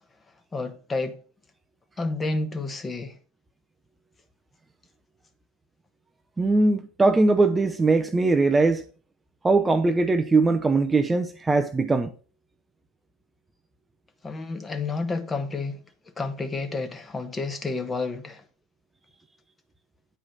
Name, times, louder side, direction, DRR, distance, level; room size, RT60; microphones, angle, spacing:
voice 1, 0.5-1.2 2.0-3.2 14.2-15.8 16.2-18.4, left 3 dB, 20° left, 1.2 m, -30 dB
voice 2, 6.4-8.8 9.4-12.1, right 3 dB, 15° right, 0.6 m, -21 dB
9.0 x 4.9 x 5.4 m
hypercardioid pair, 90°, 0 cm